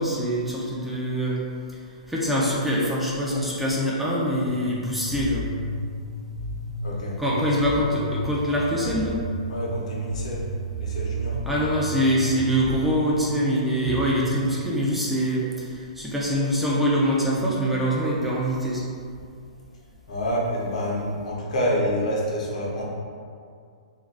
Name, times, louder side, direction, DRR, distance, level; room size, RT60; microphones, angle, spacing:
voice 1, 0.0-1.4 2.1-5.5 7.2-9.2 11.4-18.8, equal, 5° right, -6 dB, 0.3 m, -24 dB
sound 1, 4.5-14.5, right 1 dB, 50° right, 0.7 m, -33 dB
voice 2, 6.8-7.2 9.5-10.5 10.8-11.4 20.1-22.9, equal, 75° left, -4 dB, 0.7 m, -27 dB
2.4 x 2.3 x 3.2 m, 2.3 s
hypercardioid pair, 150°, 4 cm